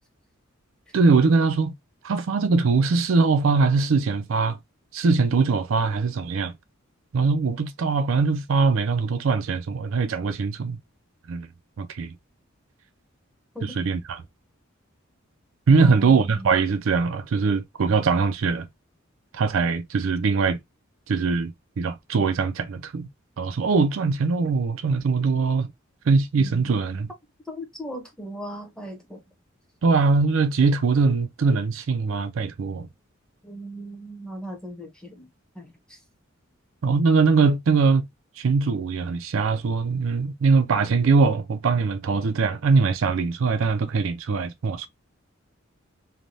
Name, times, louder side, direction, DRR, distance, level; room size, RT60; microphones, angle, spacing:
voice 1, 0.9-1.7 2.0-4.6 4.9-6.5 7.1-10.8 11.3-11.5 11.8-12.1 13.6-14.2 15.7-18.7 19.3-20.6 21.1-23.1 23.4-25.7 26.1-27.1 29.8-32.9 36.8-38.1 38.4-44.9, right 4 dB, 75° right, 0.4 m, -22 dB
voice 2, 15.8-16.5 26.4-26.5 27.5-29.2 33.4-35.3 35.5-36.0, equal, 5° left, 0.8 m, -38 dB
3.2 x 2.2 x 2.6 m
head